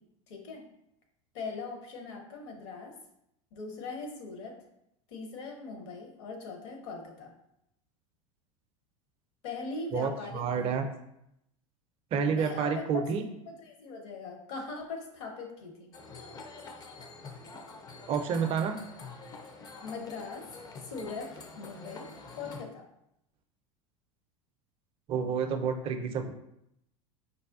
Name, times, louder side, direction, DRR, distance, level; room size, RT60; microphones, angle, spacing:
voice 1, 0.3-0.6 1.3-2.9 3.5-4.5 5.1-7.3 9.4-10.6 12.3-13.0 13.6-15.9 19.8-20.4 20.9-21.3 21.5-22.1 22.3-22.9, left 4 dB, 55° left, 1 dB, 0.8 m, -40 dB
voice 2, 9.9-10.8 12.1-13.2 18.1-18.8 25.1-26.3, right 6 dB, 35° right, 6 dB, 0.4 m, -29 dB
sound 1, 15.9-22.6, left 3 dB, 20° left, 0.4 m, -46 dB
4.7 x 2.2 x 2.4 m, 0.79 s
figure-of-eight pair, 80°, 17 cm